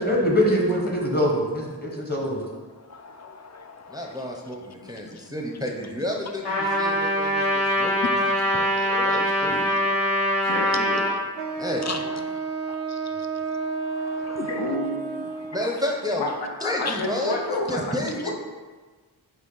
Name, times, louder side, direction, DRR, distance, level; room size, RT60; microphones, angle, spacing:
voice 1, 0.0-2.4, equal, 25° left, -1 dB, 1.0 m, -23 dB
voice 2, 2.9-4.1 7.4-7.5 8.0-8.1 8.8-8.9 11.5-12.2 13.7-14.7 15.5-15.7 16.9-17.0, left 5 dB, 40° left, 6 dB, 0.4 m, -36 dB
voice 3, 3.9-9.7 10.4-10.5 11.6-12.2 15.5-16.2 16.6-18.3, left 1 dB, 10° right, 0 dB, 0.5 m, -31 dB
Trumpet, 6.4-11.1, equal, 70° left, 1.4 m, -23 dB
voice 4, 10.5-11.0 14.5-15.3 16.2-16.3 16.6-18.3, left 2 dB, 85° left, 0 dB, 0.7 m, -30 dB
Wind instrument woodwind instrument, 11.4-15.8, right 5 dB, 85° right, 0.5 m, -31 dB
6.1 x 2.2 x 3.9 m, 1.4 s
wide cardioid pair, 45°, 41 cm